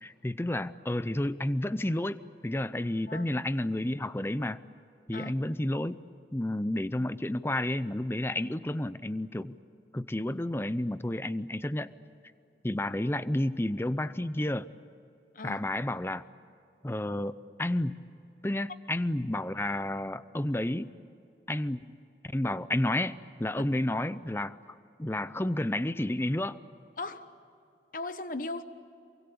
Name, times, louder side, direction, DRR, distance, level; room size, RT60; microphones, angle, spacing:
voice 1, 0.0-4.6 5.1-6.0 6.3-9.5 9.9-11.9 12.6-14.7 15.4-16.2 16.8-18.0 18.4-20.9 21.5-21.9 22.3-24.6 25.0-26.6, left 1 dB, 15° left, 15 dB, 0.6 m, -31 dB
voice 2, 27.0-27.3 27.9-28.6, left 2 dB, 50° left, 11 dB, 1.1 m, -37 dB
28.0 x 23.5 x 8.5 m, 2.7 s
head